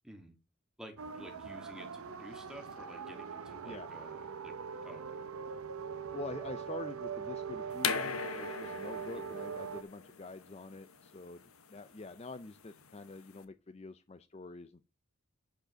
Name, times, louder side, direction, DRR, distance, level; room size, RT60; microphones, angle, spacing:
voice 1, 0.0-0.3 0.8-4.5 4.8-5.0 9.1-9.4, equal, 5° right, 4 dB, 1.8 m, -51 dB
sound 1, 1.0-9.8, right 6 dB, 85° right, 0.8 m, -42 dB
voice 2, 6.1-11.4 11.7-14.9, left 3 dB, 30° left, 11 dB, 0.5 m, -46 dB
sound 2, 7.8-13.4, left 6 dB, 80° left, 1.2 m, -39 dB
9.0 x 5.1 x 6.2 m, 0.30 s
head